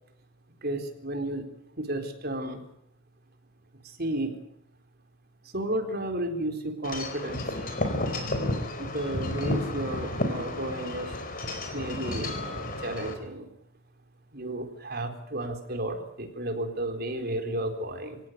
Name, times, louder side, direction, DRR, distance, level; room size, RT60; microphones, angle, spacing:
voice 1, 0.6-1.5 1.8-2.6 3.8-4.4 5.5-7.4 8.4-11.2 11.7-13.5 14.3-18.2, right 1 dB, 45° right, 5 dB, 4.2 m, -33 dB
Wind chime / Wind, 6.8-13.1, left 1 dB, 40° left, 4.3 m, -32 dB
25.5 x 17.0 x 9.5 m, 0.75 s
head